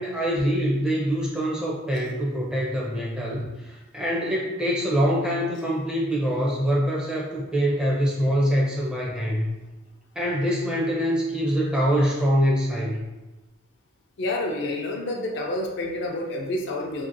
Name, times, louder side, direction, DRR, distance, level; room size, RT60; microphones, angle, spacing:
voice 1, 0.0-9.5 10.2-13.0, equal, 5° right, -4 dB, 0.4 m, -24 dB
voice 2, 14.2-17.1, left 1 dB, 55° left, 1 dB, 0.4 m, -28 dB
2.7 x 2.6 x 2.6 m, 1.1 s
head